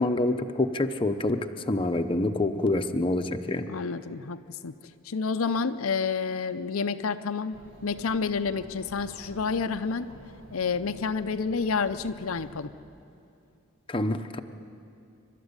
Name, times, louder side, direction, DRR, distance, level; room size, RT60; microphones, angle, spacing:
voice 1, 0.0-3.7 13.9-14.4, left 2 dB, 25° left, 6 dB, 0.8 m, -26 dB
voice 2, 3.7-4.7 5.0-10.1 10.5-12.7, left 5 dB, 75° left, 9 dB, 0.6 m, -29 dB
Chatter, 7.5-12.7, equal, 60° right, 2.1 m, -49 dB
27.5 x 12.5 x 9.7 m, 2.6 s
head